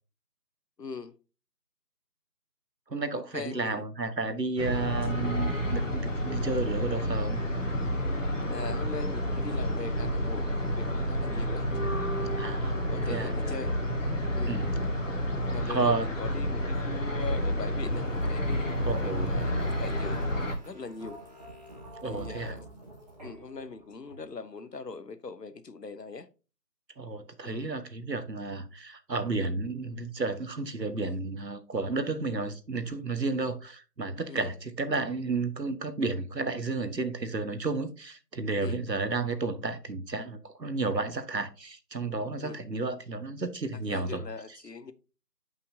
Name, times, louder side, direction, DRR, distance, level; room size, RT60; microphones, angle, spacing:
voice 1, 0.8-1.1 3.1-3.8 8.5-12.4 12.9-13.7 14.3-14.6 15.5-20.2 20.7-21.2 22.0-22.6 23.2-26.3 27.4-27.7 31.0-31.2 34.3-34.5 38.6-38.8 42.4-42.6 43.9-44.9, left 4 dB, 75° left, 1.0 m, -41 dB
voice 2, 2.9-7.4 12.4-13.3 14.5-14.7 15.5-16.1 18.8-19.3 22.0-22.6 27.0-44.2 44.5-44.6, right 3 dB, 80° right, 1.4 m, -32 dB
sound 1, 4.6-20.6, equal, 50° left, 1.9 m, -30 dB
sound 2, 17.8-24.6, right 1 dB, 25° right, 1.8 m, -49 dB
9.8 x 5.6 x 2.7 m
figure-of-eight pair, 165°, 49 cm